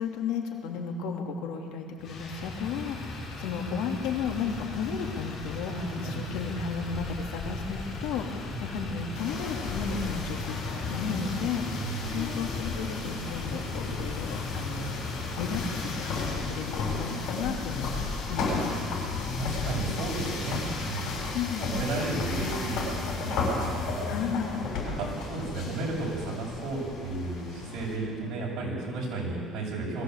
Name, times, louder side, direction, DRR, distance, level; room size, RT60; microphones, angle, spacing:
voice 1, 0.0-5.7 6.0-14.9 15.4-18.8 21.3-21.7 24.0-24.6, left 6 dB, 85° left, 1 dB, 2.8 m, -34 dB
Motor vehicle (road), 2.0-16.6, left 3 dB, 40° left, 5.6 m, -37 dB
voice 2, 5.7-6.2 8.4-8.6 11.8-12.1 19.3-21.2 21.7-24.1 24.8-30.0, right 2 dB, 55° right, -3 dB, 7.7 m, -33 dB
sound 1, 9.1-28.0, left 4 dB, 65° left, 6.9 m, -34 dB
22.0 x 16.0 x 8.2 m, 2.1 s
cardioid pair, 145°, 0 cm